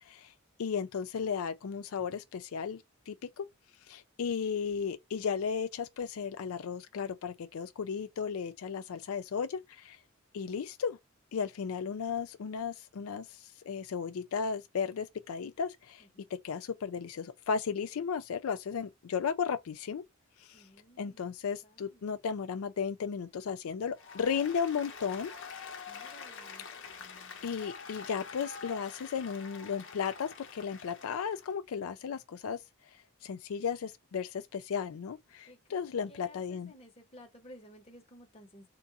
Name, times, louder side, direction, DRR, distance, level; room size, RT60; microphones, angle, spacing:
voice 1, 0.6-3.5 3.9-10.0 10.3-11.0 11.3-16.0 16.3-20.0 20.4-20.6 21.0-25.3 26.7-26.8 27.4-32.6 33.2-36.7, left 6 dB, 80° left, 0.4 m, -35 dB
voice 2, 20.5-21.3 21.6-22.1 25.8-26.7 35.5-35.6 36.1-38.7, equal, 25° left, 1.1 m, -55 dB
Applause, 24.0-31.5, left 5 dB, 60° left, 0.9 m, -46 dB
3.7 x 2.4 x 3.9 m
head